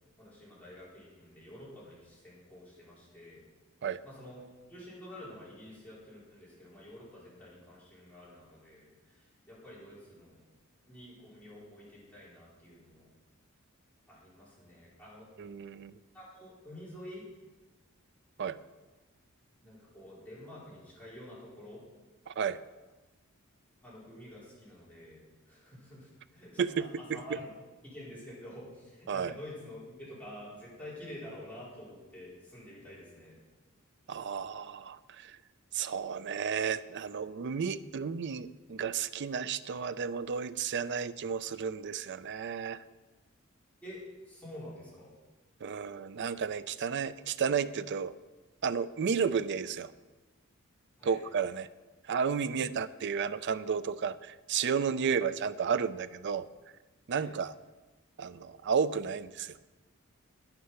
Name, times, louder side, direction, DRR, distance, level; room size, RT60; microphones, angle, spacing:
voice 1, 0.2-3.4 4.0-9.1 9.5-10.4 10.8-13.1 14.1-15.3 16.1-17.2 19.6-21.8 23.8-25.2 25.5-26.5 27.0-27.5 27.8-33.4 43.8-45.1 51.0-51.2 52.5-52.7 55.1-55.3 57.2-57.4, left 1 dB, 5° left, -8 dB, 4.2 m, -48 dB
voice 2, 15.4-16.0 18.4-18.6 22.3-22.6 26.6-27.4 29.1-29.3 34.1-35.4 35.7-42.8 45.6-48.1 48.6-49.9 51.0-51.7 52.1-56.5 57.1-57.5 58.2-59.6, right 6 dB, 55° right, 14 dB, 0.4 m, -32 dB
9.9 x 9.6 x 5.7 m, 1.2 s
head